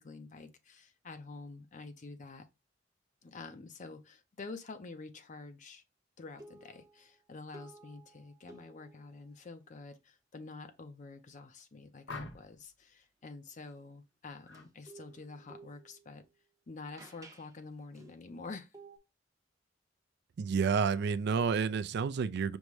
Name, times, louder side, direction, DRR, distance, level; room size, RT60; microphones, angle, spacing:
voice 1, 0.0-2.5 3.2-5.8 6.2-16.2 16.7-18.7, left 3 dB, 40° left, 0.5 m, -48 dB
sound 1, 6.3-7.2 7.5-9.3 14.5-16.3 17.0-17.5 17.9-18.3 18.7-19.0, right 3 dB, 20° right, 0.7 m, -55 dB
sound 2, 12.1-12.7 14.4-14.7 15.1-15.5, left 3 dB, 65° left, 1.0 m, -46 dB
voice 2, 20.4-22.6, right 6 dB, 60° right, 0.4 m, -30 dB
5.3 x 2.1 x 4.7 m
head